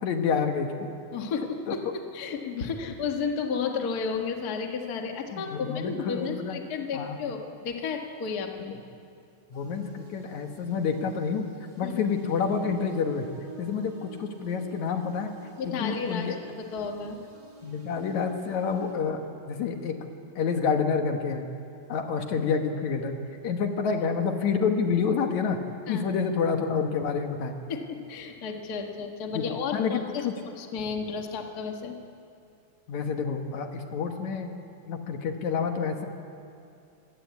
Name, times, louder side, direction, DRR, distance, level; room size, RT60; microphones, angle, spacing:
voice 1, 0.0-0.9 1.7-1.8 5.3-6.6 6.9-7.2 9.5-11.4 11.8-13.3 13.6-15.3 15.8-16.4 17.6-20.1 20.4-21.5 21.9-23.1 23.4-25.6 25.9-27.5 29.3-30.3 32.9-34.5 34.9-36.1, left 6 dB, 65° left, 5 dB, 2.7 m, -28 dB
voice 2, 1.1-1.8 2.1-8.8 11.8-11.9 15.6-16.3 16.6-17.2 25.9-26.0 27.7-30.3 30.6-31.9, left 5 dB, 40° left, 3 dB, 1.6 m, -32 dB
sound 1, 9.5-18.9, right 6 dB, 45° right, 6.5 m, -50 dB
25.0 x 18.0 x 8.4 m, 2.5 s
omnidirectional pair, 3.6 m